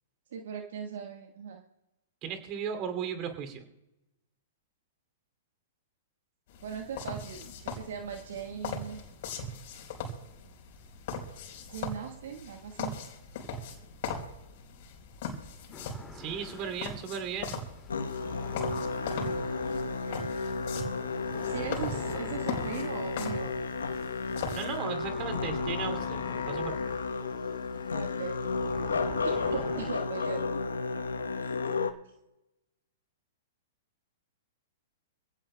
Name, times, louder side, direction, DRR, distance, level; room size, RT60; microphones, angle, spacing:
voice 1, 0.3-1.6 6.6-9.0 11.7-13.0 19.9-20.3 21.5-23.7 27.9-28.5 29.2-30.6, right 7 dB, 65° right, 3 dB, 1.3 m, -39 dB
voice 2, 2.2-3.6 16.1-17.7 24.5-26.8, right 7 dB, 35° right, 6 dB, 2.5 m, -36 dB
sound 1, 6.5-24.8, left 4 dB, 55° left, 4.1 m, -40 dB
sound 2, 15.7-29.9, left 3 dB, 15° left, 2.1 m, -47 dB
Musical instrument, 17.9-31.9, left 4 dB, 85° left, 0.9 m, -32 dB
27.0 x 17.0 x 2.2 m, 0.97 s
hypercardioid pair, 115°, 0 cm